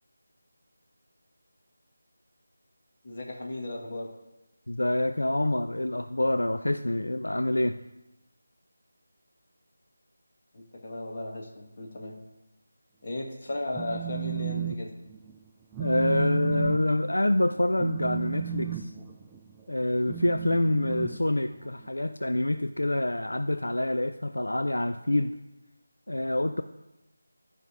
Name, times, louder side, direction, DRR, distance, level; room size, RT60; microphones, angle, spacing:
voice 1, 3.0-4.1 10.5-12.2 13.0-14.9, left 2 dB, 45° left, 0 dB, 1.7 m, -36 dB
voice 2, 4.7-7.8 15.8-18.9 19.7-25.4 26.1-26.6, left 1 dB, 85° left, 9 dB, 0.4 m, -26 dB
Telephone, 13.5-14.8 15.1-15.4 15.7-21.9, right 11 dB, 10° right, 0.3 m, -35 dB
12.5 x 5.3 x 4.8 m, 0.97 s
figure-of-eight pair, 165°, 0 cm